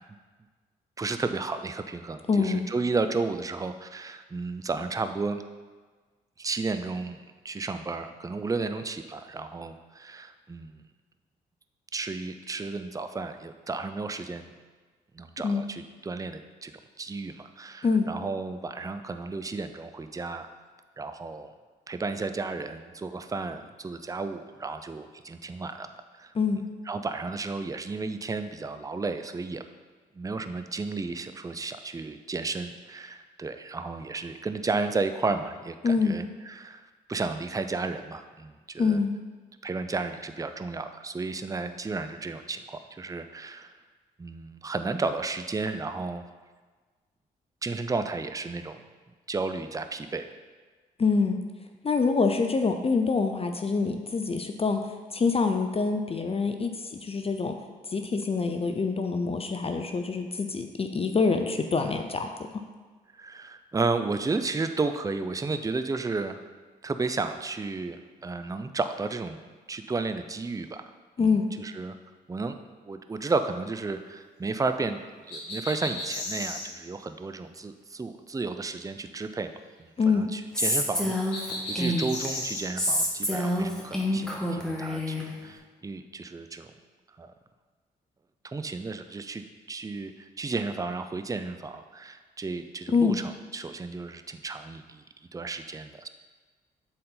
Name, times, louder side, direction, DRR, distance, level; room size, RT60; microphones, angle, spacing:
voice 1, 1.0-5.4 6.4-7.2 7.4-10.8 11.9-14.5 15.1-16.7 17.0-20.5 21.0-21.5 21.9-25.9 26.1-26.3 26.9-29.6 30.2-36.8 37.1-39.0 39.6-43.7 44.2-46.2 47.6-48.8 49.3-50.3 63.1-66.4 66.8-70.8 71.2-72.0 72.3-72.5 72.8-75.0 75.3-79.5 79.8-86.7 87.2-87.3 88.4-95.0 95.3-96.1, right 3 dB, 20° right, 9 dB, 0.5 m, -33 dB
voice 2, 2.3-2.7 15.4-15.6 17.8-18.1 26.3-26.7 35.8-36.2 38.8-39.1 51.0-51.4 51.8-57.5 57.8-62.3 71.2-71.5 80.0-80.3 92.9-93.2, left 4 dB, 35° left, 6 dB, 0.6 m, -25 dB
sound 1, 75.3-76.7 81.3-82.6, left 2 dB, 80° left, 1.6 m, -34 dB
Female speech woman speaking, 80.5-82.3 82.8-85.3, left 1 dB, 5° left, 1.5 m, -27 dB
7.6 x 4.2 x 3.9 m, 1.4 s
hypercardioid pair, 45°, 18 cm